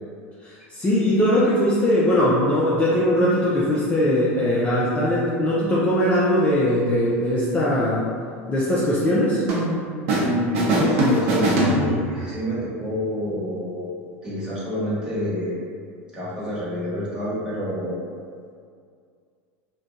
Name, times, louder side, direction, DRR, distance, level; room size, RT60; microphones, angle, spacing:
voice 1, 0.4-8.0 8.5-9.4, left 1 dB, 20° left, -7 dB, 0.4 m, -20 dB
sound 1, 9.5-10.3 10.5-12.3, right 1 dB, 75° right, 0.6 m, -22 dB
voice 2, 10.0-14.0 14.2-15.6 16.1-18.0, equal, 10° right, -10 dB, 1.1 m, -27 dB
2.6 x 2.2 x 2.3 m, 2.2 s
hypercardioid pair, 100°, 7 cm